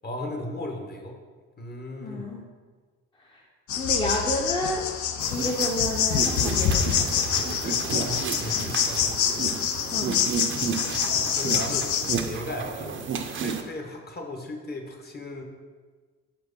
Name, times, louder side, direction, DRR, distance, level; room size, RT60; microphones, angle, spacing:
voice 1, 0.0-1.2 1.6-2.2 7.6-9.9 10.5-13.0 13.3-15.4, left 1 dB, 35° left, 2 dB, 1.0 m, -37 dB
voice 2, 2.0-2.4 3.2-3.5 3.7-4.9 5.3-7.6 9.9-10.2, left 1 dB, 15° left, -2 dB, 0.7 m, -31 dB
sound 1, 3.7-12.2, left 8 dB, 75° left, 0.6 m, -26 dB
sound 2, 5.2-13.6, right 6 dB, 40° right, 0.6 m, -32 dB
4.5 x 4.3 x 5.2 m, 1.4 s
cardioid pair, 90°, 30 cm